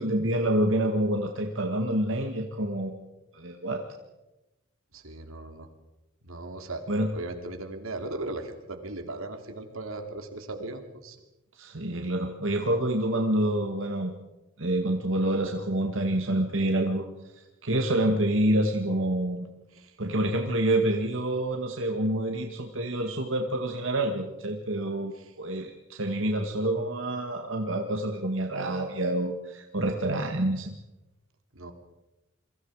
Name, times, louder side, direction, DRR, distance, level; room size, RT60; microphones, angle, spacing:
voice 1, 0.0-3.0 3.3-3.8 6.9-7.1 11.6-14.1 14.6-17.0 17.6-19.5 20.0-30.7, right 1 dB, 70° right, 3 dB, 1.9 m, -27 dB
voice 2, 4.9-5.7 6.2-6.8 7.1-11.2 19.7-20.0 25.2-25.3 31.5-31.7, right 2 dB, 85° right, 6 dB, 3.1 m, -38 dB
27.5 x 23.5 x 4.9 m, 1.0 s
head